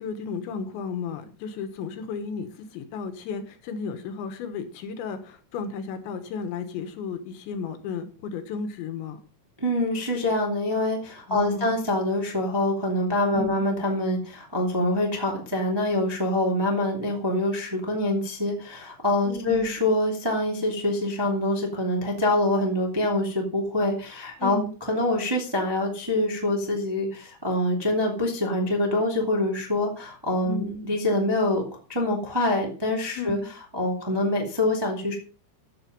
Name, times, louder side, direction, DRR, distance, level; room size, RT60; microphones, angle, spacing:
voice 1, 0.0-9.2 11.3-11.8 13.3-13.6 19.3-19.9 24.4-24.7 30.4-30.9 33.2-33.5, left 5 dB, 75° left, 9 dB, 3.3 m, -33 dB
voice 2, 9.6-24.6 24.9-31.6 31.9-33.4 33.7-35.1, left 1 dB, 10° right, -1 dB, 1.1 m, -25 dB
14.0 x 7.0 x 5.3 m, 0.39 s
omnidirectional pair, 5.6 m